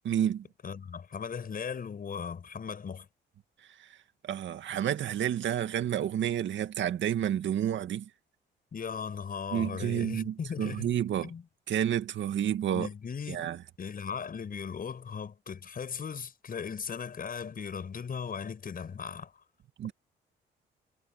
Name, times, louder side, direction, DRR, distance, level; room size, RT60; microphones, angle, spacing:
voice 1, 0.1-0.4 4.2-8.1 9.5-11.3 11.7-12.9 13.3-13.6 19.8-19.9, right 10 dB, 70° right, 2.1 m, -30 dB
voice 2, 0.6-3.1 8.7-11.0 11.2-11.4 12.7-13.5 13.8-19.3, left 6 dB, 45° left, 7.3 m, -38 dB
cardioid pair, 90°, 20 cm